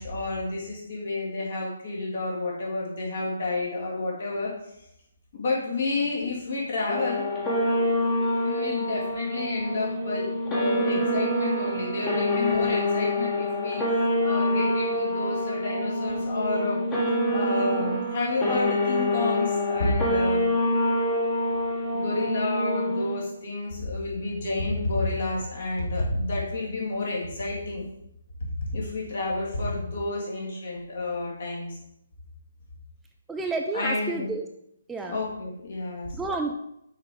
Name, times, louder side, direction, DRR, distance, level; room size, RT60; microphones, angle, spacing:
voice 1, 0.0-4.5 5.3-7.2 8.3-13.8 14.2-16.8 17.3-20.5 21.9-27.8 28.7-31.8 33.7-34.3 35.1-36.2, left 2 dB, 50° left, -4 dB, 2.3 m, -30 dB
sound 1, 6.9-23.2, left 1 dB, 15° left, 1.2 m, -26 dB
voice 2, 33.3-34.5 34.9-35.1 36.1-36.5, right 3 dB, 5° right, 3 dB, 0.3 m, -30 dB
6.4 x 4.8 x 3.7 m, 0.80 s
figure-of-eight pair, 140°, 0 cm